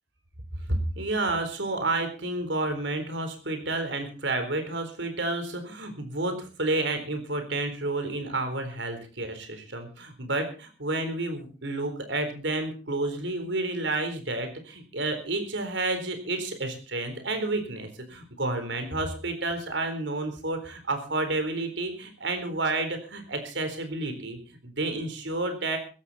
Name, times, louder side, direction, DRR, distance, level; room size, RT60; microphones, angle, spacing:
voice 1, 0.7-25.8, right 2 dB, 75° right, 8 dB, 4.1 m, -30 dB
16.0 x 15.0 x 4.2 m, 0.38 s
head